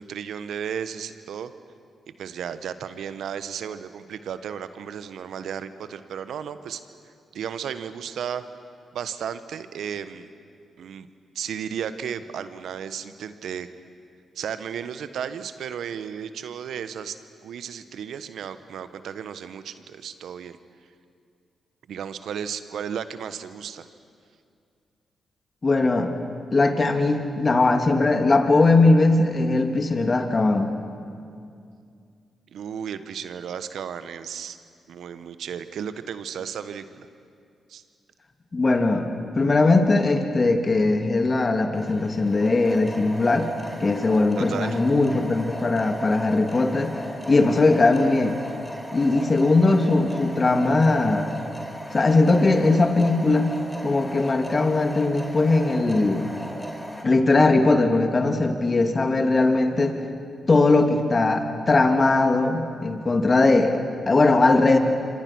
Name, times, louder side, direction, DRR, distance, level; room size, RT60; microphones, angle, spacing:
voice 1, 0.0-1.5 2.2-6.8 7.3-8.4 8.9-10.3 10.8-11.1 11.3-13.7 14.3-17.2 17.4-20.6 21.9-23.9 32.5-34.6 34.9-37.1 37.7-37.8 44.4-44.8, right 8 dB, 75° right, 12 dB, 1.1 m, -34 dB
voice 2, 25.6-26.2 26.5-30.7 38.5-43.5 43.8-47.0 47.3-48.4 48.9-51.3 51.9-53.6 53.8-56.3 57.0-60.0 60.5-64.8, left 2 dB, 40° left, 5 dB, 2.8 m, -20 dB
sound 1, 41.7-57.0, equal, 5° left, 4.2 m, -37 dB
27.0 x 25.5 x 6.2 m, 2.4 s
hypercardioid pair, 40°, 0 cm